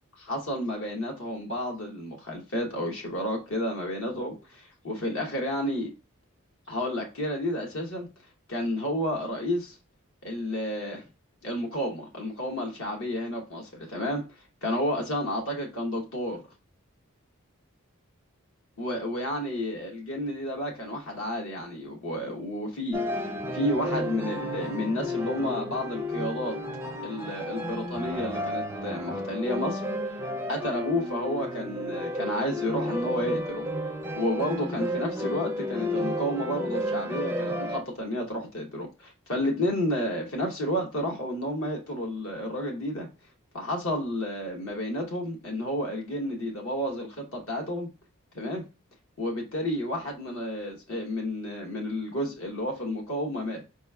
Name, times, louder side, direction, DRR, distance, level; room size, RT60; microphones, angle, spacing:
voice 1, 0.2-5.9 6.7-8.1 8.5-9.8 10.2-11.0 11.4-14.2 14.6-16.4 18.8-26.6 27.0-29.8 30.5-33.7 34.1-43.1 43.5-47.9 48.3-48.6 49.2-53.6, left 1 dB, 70° left, 0.9 m, -31 dB
sound 1, 22.9-37.8, left 1 dB, 10° right, 0.4 m, -32 dB
4.8 x 2.9 x 2.2 m
head